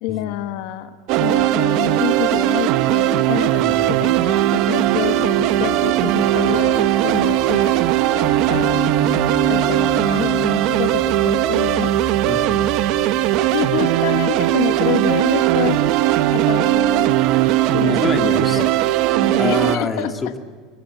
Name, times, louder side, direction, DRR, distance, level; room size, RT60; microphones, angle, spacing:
voice 1, 0.0-7.8 8.1-8.9 9.5-11.9 13.5-15.8 16.3-17.2 17.7-18.7 19.2-20.1, left 13 dB, 70° left, 9 dB, 1.1 m, -27 dB
sound 1, 1.1-19.8, right 14 dB, 60° right, 0.8 m, -18 dB
sound 2, 3.6-13.0, right 3 dB, 35° right, 3.3 m, -36 dB
sound 3, 8.5-15.0, left 5 dB, 40° left, 2.7 m, -34 dB
voice 2, 12.3-12.7 17.6-18.6 19.4-20.4, left 3 dB, 20° left, 4 dB, 2.1 m, -26 dB
24.5 x 18.0 x 8.1 m, 1.5 s
supercardioid pair, 135°, 0 cm